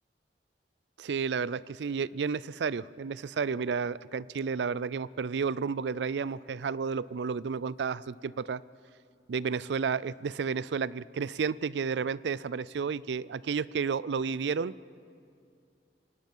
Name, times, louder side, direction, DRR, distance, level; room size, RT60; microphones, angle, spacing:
voice 1, 1.0-8.6 9.3-14.7, right 5 dB, 80° right, 20 dB, 0.4 m, -31 dB
25.5 x 18.5 x 5.5 m, 2.4 s
head